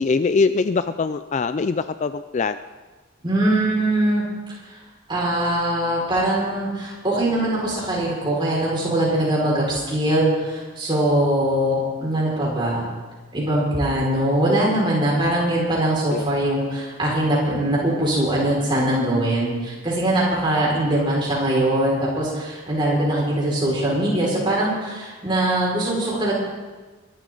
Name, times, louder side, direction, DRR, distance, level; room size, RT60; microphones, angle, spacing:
voice 1, 0.0-2.6 16.1-16.2, left 4 dB, 35° left, 12 dB, 0.3 m, -22 dB
voice 2, 3.2-4.5 5.1-12.9 13.3-26.3, right 1 dB, 25° right, -5 dB, 5.3 m, -22 dB
23.0 x 12.5 x 3.9 m, 1.3 s
head